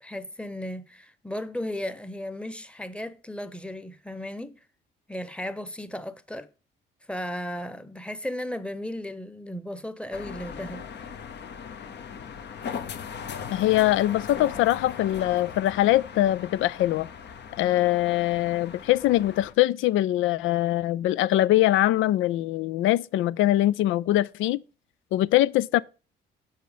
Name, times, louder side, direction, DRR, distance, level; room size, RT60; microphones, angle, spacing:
voice 1, 0.0-4.6 5.1-6.5 7.1-11.1, left 1 dB, 5° left, 0.9 m, -35 dB
sound 1, 10.1-19.5, left 7 dB, 60° left, 1.1 m, -39 dB
voice 2, 13.5-17.1 17.6-24.6 25.1-25.8, left 14 dB, 85° left, 0.4 m, -22 dB
7.6 x 5.7 x 5.1 m
cardioid pair, 90°, 20 cm